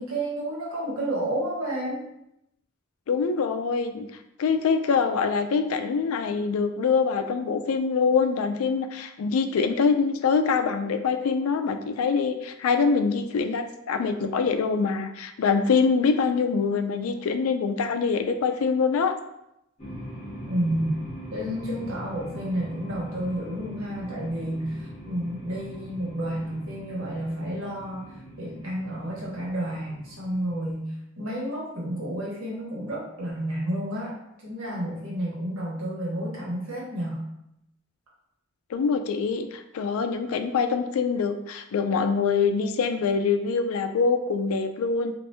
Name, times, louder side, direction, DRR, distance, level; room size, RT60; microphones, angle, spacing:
voice 1, 0.0-2.0 20.5-21.0 21.3-37.3, right 1 dB, 80° right, -5 dB, 1.3 m, -31 dB
voice 2, 3.1-4.1 4.4-19.2 38.7-45.1, left 5 dB, 85° left, 7 dB, 0.4 m, -24 dB
sound 1, 19.8-30.7, equal, 30° left, 1.1 m, -41 dB
3.3 x 2.6 x 2.7 m, 0.81 s
head